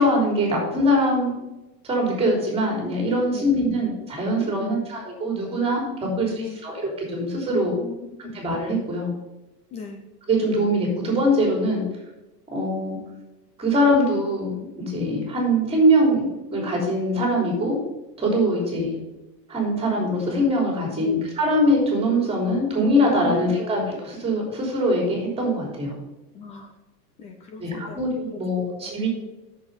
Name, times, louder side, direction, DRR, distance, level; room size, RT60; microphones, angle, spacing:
voice 1, 0.0-1.3 1.8-5.8 6.2-6.3 6.6-7.7 8.3-9.1 10.3-11.8 12.5-13.0 13.6-16.3 16.5-17.8 18.2-19.0 19.5-25.9 27.6-29.1, equal, 10° right, 0 dB, 3.4 m, -22 dB
voice 2, 6.0-6.6 7.5-8.0 8.2-8.4 9.7-10.0 20.9-21.2 23.2-23.4 26.3-26.7 27.2-28.0 28.8-28.9, left 5 dB, 15° left, 5 dB, 0.4 m, -37 dB
8.4 x 7.0 x 5.4 m, 1.0 s
supercardioid pair, 155°, 46 cm